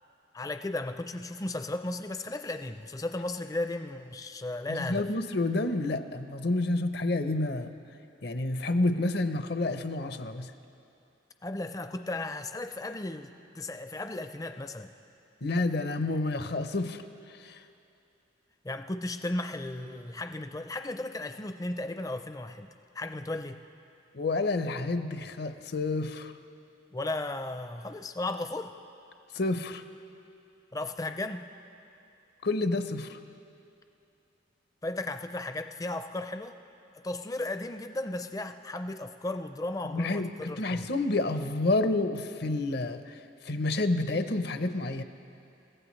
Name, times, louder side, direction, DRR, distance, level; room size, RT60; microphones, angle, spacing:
voice 1, 0.3-5.1 11.4-13.3 13.5-14.9 18.6-22.7 22.9-23.6 26.9-28.7 30.7-31.5 34.8-36.6 36.9-40.9, left 2 dB, 20° left, 8 dB, 0.5 m, -35 dB
voice 2, 4.7-7.7 8.2-10.5 15.4-17.0 17.4-17.6 24.1-26.3 29.3-29.8 32.4-33.2 39.8-43.2 43.4-45.0, left 2 dB, 55° left, 9 dB, 0.7 m, -29 dB
30.0 x 15.5 x 3.2 m, 2.7 s
head